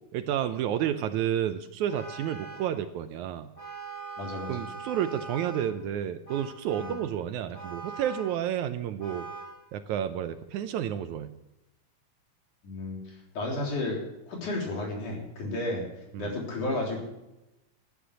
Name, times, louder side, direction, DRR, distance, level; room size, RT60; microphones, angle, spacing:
voice 1, 0.1-3.5 4.5-9.3 9.7-11.3 16.1-16.3, right 10 dB, 75° right, 9 dB, 2.0 m, -30 dB
Vehicle horn car horn honking, 1.9-2.8 3.6-5.7 6.3-7.1 7.5-8.4 9.0-9.6, right 4 dB, 25° left, 3.0 m, -41 dB
voice 2, 4.2-4.7 6.8-6.9 12.6-13.0 13.3-14.0 14.3-15.9 16.2-17.1, left 2 dB, 65° left, -1 dB, 5.0 m, -32 dB
14.0 x 10.0 x 7.6 m, 0.95 s
omnidirectional pair, 3.7 m